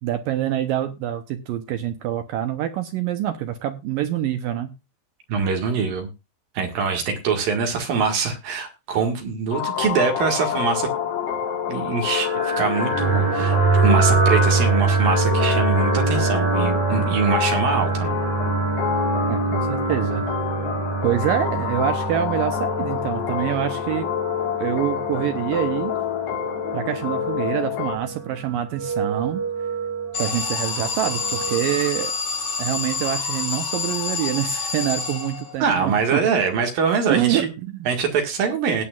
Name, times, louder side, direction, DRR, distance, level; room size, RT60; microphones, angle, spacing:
voice 1, 0.0-4.7 19.3-20.3 21.0-24.1 24.6-25.9 26.7-29.4 30.2-32.1 32.6-36.3 37.1-37.9, right 11 dB, 80° right, 8 dB, 2.1 m, -26 dB
voice 2, 5.3-6.1 6.5-10.9 11.7-12.3 12.6-13.6 13.8-18.2 35.6-37.5 37.9-38.9, right 5 dB, 60° right, 4 dB, 3.3 m, -23 dB
sound 1, 9.5-28.0, left 8 dB, 75° left, 3.8 m, -27 dB
sound 2, 12.1-31.8, right 4 dB, 40° right, 5.8 m, -25 dB
Alarm, 30.1-35.7, left 5 dB, 45° left, 6.9 m, -27 dB
18.0 x 9.0 x 2.4 m, 0.26 s
omnidirectional pair, 4.8 m